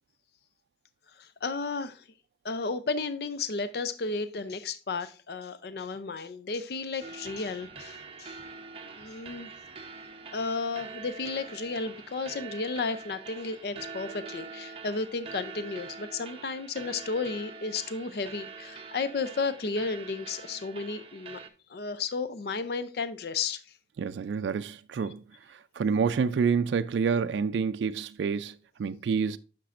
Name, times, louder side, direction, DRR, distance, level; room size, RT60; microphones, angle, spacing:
voice 1, 1.2-2.0 2.4-8.4 8.9-9.5 10.3-21.4 21.7-23.6, left 4 dB, 60° left, 0.5 m, -33 dB
sound 1, 7.0-21.5, right 5 dB, 30° right, 0.8 m, -45 dB
voice 2, 24.0-25.2 25.5-29.4, right 5 dB, 80° right, 0.3 m, -28 dB
10.0 x 6.0 x 2.4 m
head